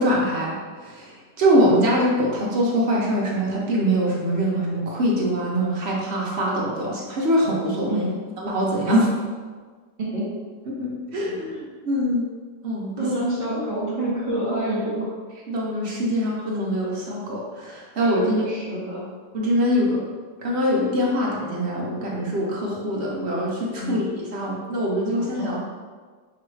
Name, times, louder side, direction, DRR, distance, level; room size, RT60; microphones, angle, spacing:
voice 1, 0.0-8.1 8.4-9.1 10.7-12.3 12.6-12.9 15.5-18.4 19.3-20.0 20.4-25.7, equal, 55° right, -3 dB, 0.7 m, -23 dB
voice 2, 13.0-15.1 18.0-19.1 23.8-24.0 25.1-25.5, right 1 dB, 30° right, -8 dB, 1.6 m, -28 dB
3.1 x 3.0 x 4.6 m, 1.5 s
omnidirectional pair, 1.9 m